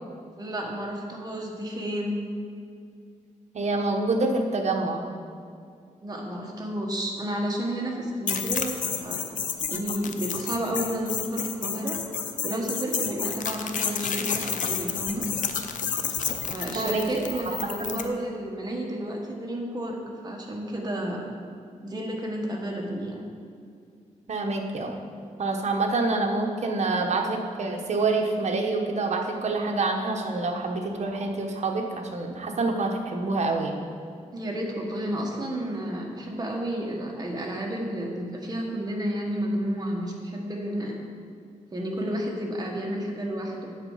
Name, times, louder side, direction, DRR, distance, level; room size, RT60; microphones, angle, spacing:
voice 1, 0.4-2.2 6.0-12.0 12.4-15.2 16.5-21.3 21.8-23.3 34.3-41.1 41.7-43.7, right 1 dB, 30° right, -1 dB, 1.4 m, -31 dB
voice 2, 3.5-5.0 16.7-17.0 17.5-18.0 24.3-24.9 25.4-33.8, right 3 dB, 60° right, 2 dB, 1.1 m, -27 dB
sound 1, 8.3-18.1, left 7 dB, 75° left, 0.6 m, -30 dB
8.0 x 7.7 x 5.6 m, 2.3 s
wide cardioid pair, 130°, 13 cm